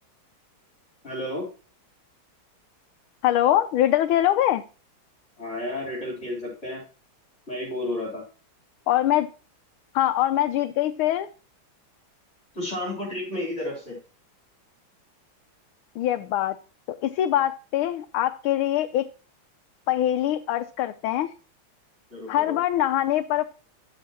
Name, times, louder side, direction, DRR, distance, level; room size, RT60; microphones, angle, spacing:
voice 1, 1.0-1.5 5.4-6.8 7.5-8.2 12.5-14.0 22.1-22.6, left 1 dB, 35° left, -4 dB, 4.3 m, -32 dB
voice 2, 3.2-4.6 8.9-9.3 9.9-11.3 16.0-16.6 17.0-19.1 19.9-21.3 22.3-23.4, left 12 dB, 85° left, 7 dB, 1.4 m, -23 dB
10.5 x 8.1 x 2.9 m, 0.35 s
omnidirectional pair, 2.2 m